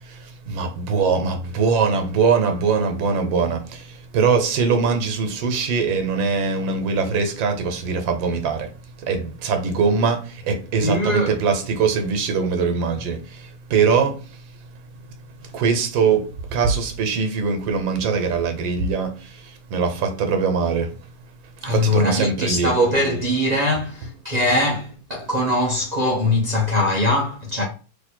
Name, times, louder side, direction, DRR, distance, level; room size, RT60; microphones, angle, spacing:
voice 1, 0.0-8.7 9.0-14.4 15.5-20.9 21.6-22.7, right 5 dB, 85° right, 1.6 m, -22 dB
voice 2, 10.8-11.3 21.6-27.7, left 1 dB, 55° right, 0.4 m, -21 dB
3.3 x 3.2 x 4.3 m
omnidirectional pair, 2.1 m